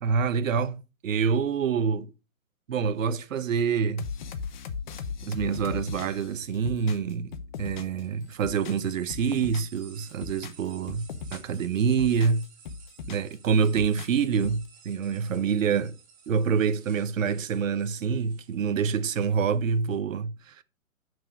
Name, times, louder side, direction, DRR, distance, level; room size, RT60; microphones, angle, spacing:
voice 1, 0.0-2.1 2.7-4.1 5.2-7.3 7.6-12.4 13.1-15.9 16.3-20.6, right 6 dB, 65° right, 0.9 m, -26 dB
sound 1, 4.0-8.0 8.3-9.8 10.1-11.6 11.9-13.3 13.6-14.7, left 6 dB, 35° left, 0.8 m, -38 dB
sound 2, 8.0-20.0, right 6 dB, 20° right, 1.9 m, -54 dB
6.6 x 6.2 x 5.0 m
hypercardioid pair, 135°, 42 cm